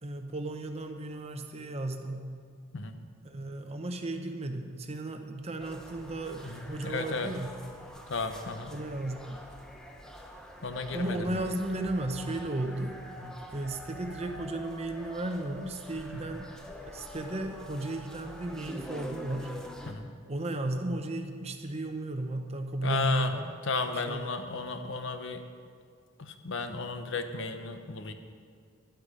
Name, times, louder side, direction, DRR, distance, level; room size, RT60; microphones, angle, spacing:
voice 1, 0.0-2.3 3.2-7.5 8.7-9.4 10.9-13.0 13.5-16.5 16.8-19.6 20.3-23.5 24.1-24.3, right 1 dB, 30° right, 6 dB, 0.8 m, -34 dB
sound 1, 5.6-19.9, equal, 5° left, 0.8 m, -45 dB
voice 2, 6.4-7.3 8.1-8.7 10.6-11.5 13.2-13.3 16.1-16.3 19.9-20.1 22.8-25.4 26.2-28.1, left 3 dB, 60° left, 8 dB, 0.8 m, -34 dB
12.5 x 10.5 x 5.0 m, 2.2 s
head